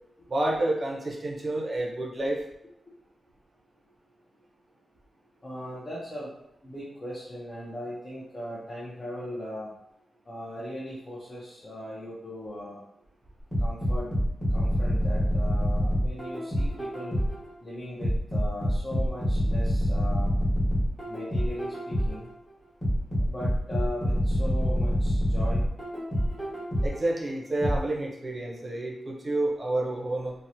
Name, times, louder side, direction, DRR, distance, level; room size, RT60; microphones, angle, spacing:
voice 1, 0.3-2.4 26.8-30.3, right 1 dB, 30° right, -2 dB, 0.5 m, -29 dB
voice 2, 5.4-6.3 6.6-9.7 10.3-12.8 13.6-14.2 14.5-17.2 17.6-20.4 21.1-22.3 23.2-25.7 26.4-26.5, left 1 dB, 30° left, -7 dB, 0.5 m, -38 dB
sound 1, 13.5-17.5 18.0-22.3 22.8-27.1 27.6-27.8, equal, ahead, 1.1 m, -26 dB
2.8 x 2.0 x 2.6 m, 0.78 s
wide cardioid pair, 140°, 0 cm